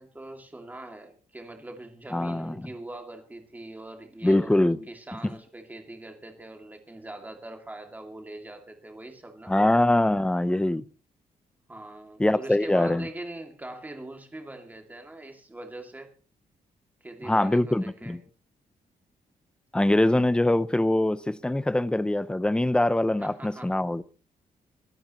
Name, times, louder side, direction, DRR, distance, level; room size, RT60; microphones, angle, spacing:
voice 1, 0.0-9.6 11.7-16.1 17.0-18.2 23.2-23.7, right 1 dB, 10° right, 2.5 m, -42 dB
voice 2, 2.1-2.7 4.2-4.8 9.5-10.8 12.2-13.1 17.2-18.2 19.7-24.0, left 1 dB, 5° left, 0.6 m, -23 dB
24.0 x 12.5 x 3.1 m
wide cardioid pair, 170°, 14 cm